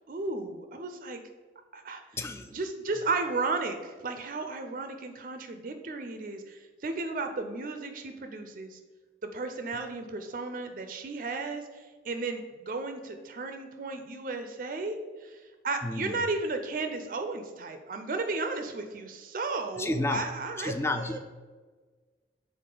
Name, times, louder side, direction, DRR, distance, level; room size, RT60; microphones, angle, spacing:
voice 1, 0.1-1.2 1.7-2.0 2.5-8.8 9.2-21.2, right 3 dB, 50° right, 7 dB, 0.4 m, -34 dB
voice 2, 2.1-2.6 15.8-16.1 19.8-21.2, left 2 dB, 15° left, 8 dB, 0.3 m, -32 dB
6.5 x 4.0 x 3.8 m, 1.4 s
head